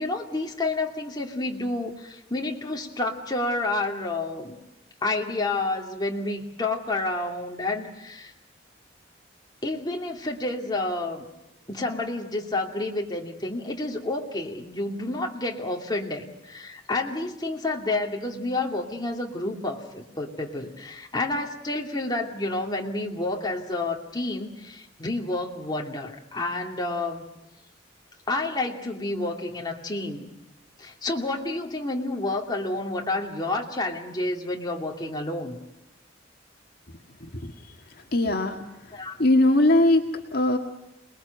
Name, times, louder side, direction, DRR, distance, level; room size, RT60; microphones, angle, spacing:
voice 1, 0.0-4.6 5.0-8.3 9.6-11.2 11.7-27.2 28.3-30.3 30.8-35.6 38.9-39.2, left 2 dB, 20° left, 0 dB, 2.6 m, -29 dB
voice 2, 37.2-37.7 38.1-38.6 39.2-40.0 40.3-40.6, left 1 dB, 55° left, 3 dB, 1.8 m, -20 dB
27.5 x 21.0 x 8.1 m, 0.88 s
head